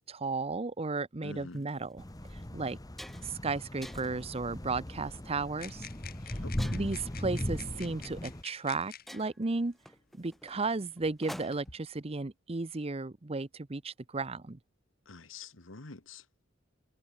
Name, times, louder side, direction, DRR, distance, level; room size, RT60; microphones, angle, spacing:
voice 1, 0.0-2.0 2.5-2.8 3.2-5.9 6.7-9.7 10.2-14.6, right 3 dB, 30° right, 0.8 m, -34 dB
voice 2, 1.2-1.6 6.4-6.9 15.1-16.3, left 3 dB, 85° left, 1.9 m, -47 dB
sound 1, 1.5-1.7 2.3-2.4 2.7-3.4 3.8-4.3 4.9-5.2 6.6-7.1 8.2-8.3 8.7-8.8 9.1-11.8, equal, ahead, 1.5 m, -48 dB
sound 2, 2.0-8.4, left 1 dB, 20° left, 1.3 m, -38 dB
sound 3, 5.6-9.2 10.2-10.3 11.0-11.8, left 9 dB, 50° left, 2.5 m, -50 dB
head